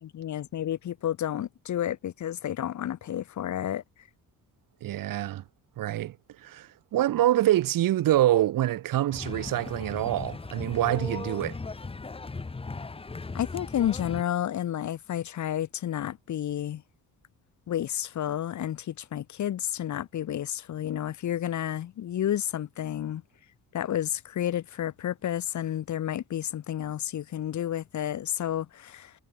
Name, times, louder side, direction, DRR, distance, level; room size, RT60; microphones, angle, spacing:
voice 1, 0.0-3.8 13.3-16.8 17.7-23.2 23.7-29.1, left 11 dB, 55° left, 3.0 m, -31 dB
voice 2, 4.8-5.4 5.8-6.2 6.4-11.6, right 13 dB, 75° right, 3.2 m, -25 dB
sound 1, 9.1-14.2, left 3 dB, 15° left, 1.8 m, -37 dB
cardioid pair, 150°, 34 cm